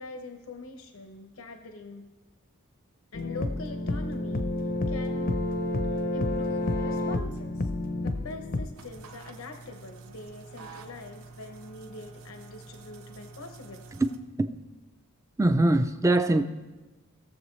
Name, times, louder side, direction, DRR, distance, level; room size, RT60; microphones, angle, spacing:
voice 1, 0.0-2.1 3.1-4.5 4.9-5.5 5.9-7.7 8.0-13.8, left 2 dB, 75° left, 6 dB, 0.8 m, -43 dB
sound 1, 3.1-8.7, left 2 dB, 40° left, 0.6 m, -29 dB
sound 2, 8.7-14.2, right 3 dB, 80° right, 0.8 m, -48 dB
voice 2, 15.4-16.4, right 2 dB, 15° right, 9 dB, 0.4 m, -22 dB
18.0 x 7.1 x 3.1 m, 1.2 s
head